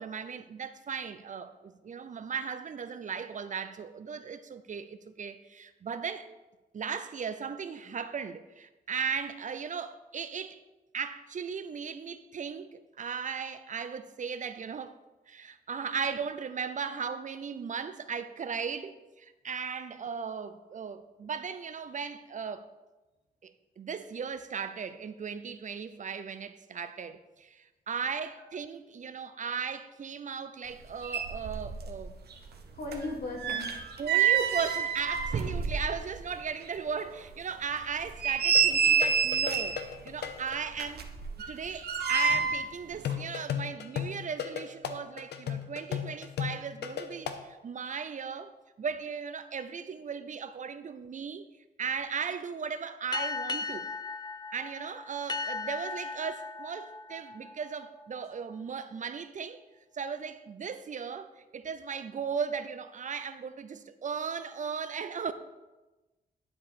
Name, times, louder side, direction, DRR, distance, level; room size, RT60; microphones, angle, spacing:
voice 1, 0.0-6.3 6.7-10.6 10.9-15.0 15.3-22.7 23.4-32.1 34.0-41.1 41.5-48.5 48.8-51.5 51.8-53.9 54.5-59.6 59.9-65.3, right 6 dB, 50° right, 0.5 m, -37 dB
sound 1, 30.8-30.9 31.0-32.0 32.3-36.3 36.6-36.7 37.2-37.3 37.9-39.9 40.7-42.7 43.0-43.1, right 6 dB, 70° right, 0.9 m, -28 dB
voice 2, 32.7-33.9 35.3-35.4, left 2 dB, 70° left, 2.4 m, -38 dB
sound 2, 38.5-40.6 43.0-47.4, left 9 dB, 85° left, 0.7 m, -35 dB
sound 3, 53.1-58.2, left 3 dB, 25° left, 0.5 m, -37 dB
10.5 x 4.8 x 4.2 m
cardioid pair, 85°, 17 cm